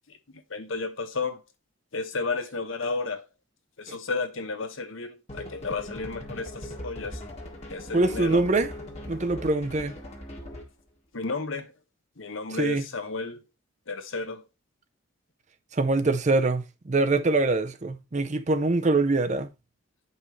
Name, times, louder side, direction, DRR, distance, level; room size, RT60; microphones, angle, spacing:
voice 1, 0.1-1.4 1.9-3.2 3.8-7.2 7.7-8.4 11.1-11.7 12.2-13.4 13.9-14.4, left 3 dB, 70° left, 1.1 m, -32 dB
sound 1, 5.3-10.8, left 1 dB, 30° left, 1.5 m, -40 dB
voice 2, 7.9-8.7 9.1-9.9 12.5-12.8 15.7-19.5, right 2 dB, 35° right, 0.6 m, -24 dB
8.5 x 5.4 x 3.1 m
head